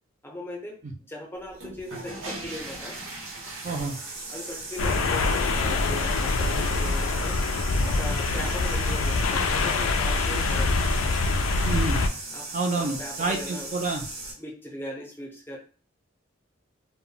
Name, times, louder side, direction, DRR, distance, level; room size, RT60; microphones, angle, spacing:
voice 1, 0.2-0.8 1.1-3.0 4.3-7.4 7.8-10.8 12.3-13.7 14.4-15.6, left 1 dB, 10° left, -1 dB, 0.6 m, -39 dB
sound 1, 1.4-14.3, right 2 dB, 85° right, 0.8 m, -38 dB
voice 2, 3.6-4.0 11.6-12.0 12.5-14.0, right 3 dB, 40° right, 2 dB, 0.4 m, -28 dB
sound 2, 4.8-12.1, left 3 dB, 85° left, 0.4 m, -25 dB
2.1 x 2.1 x 3.7 m, 0.40 s
head